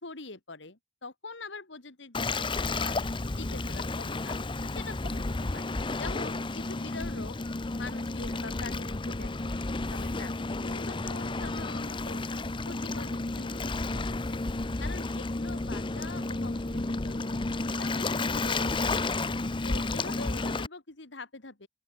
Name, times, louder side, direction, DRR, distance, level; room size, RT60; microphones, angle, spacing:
voice 1, 0.0-4.4 4.7-7.4 7.8-9.6 9.9-12.2 12.7-14.4 14.8-17.4 17.8-19.1 19.6-21.7, left 3 dB, 70° left, 2.2 m, -44 dB
Waves surf, 2.1-20.7, left 2 dB, 25° left, 0.8 m, -32 dB
open air
head